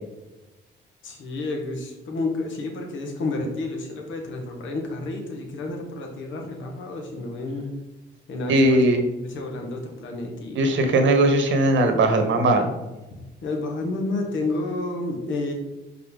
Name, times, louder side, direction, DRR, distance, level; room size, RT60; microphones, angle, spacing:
voice 1, 1.0-7.7 8.3-8.8 9.2-10.9 13.1-15.5, left 2 dB, 75° left, 2 dB, 1.7 m, -30 dB
voice 2, 8.5-9.0 10.5-12.7, right 2 dB, 70° right, 6 dB, 1.4 m, -19 dB
5.8 x 5.6 x 3.9 m, 1.0 s
cardioid pair, 90°, 20 cm